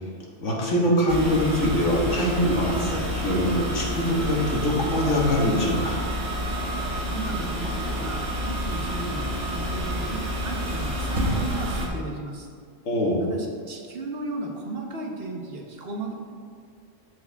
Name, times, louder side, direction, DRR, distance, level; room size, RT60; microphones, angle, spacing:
voice 1, 0.4-6.0 12.9-13.2, equal, 90° left, -3 dB, 1.9 m, -23 dB
sound 1, 1.1-11.9, equal, 85° right, 1.7 m, -29 dB
voice 2, 7.1-12.5 13.2-16.1, right 3 dB, 55° right, 0 dB, 1.3 m, -35 dB
13.5 x 4.7 x 3.5 m, 2.1 s
omnidirectional pair, 1.2 m